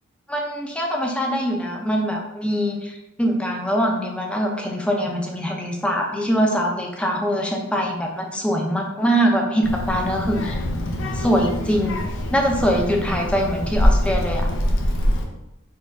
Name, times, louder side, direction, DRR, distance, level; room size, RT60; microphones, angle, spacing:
voice 1, 0.3-10.6 11.1-12.0 12.3-14.5, equal, 5° left, 0 dB, 0.6 m, -23 dB
Child speech kid speaking, 9.6-15.2, equal, 60° left, 0.7 m, -24 dB
4.5 x 2.5 x 4.6 m, 0.90 s
head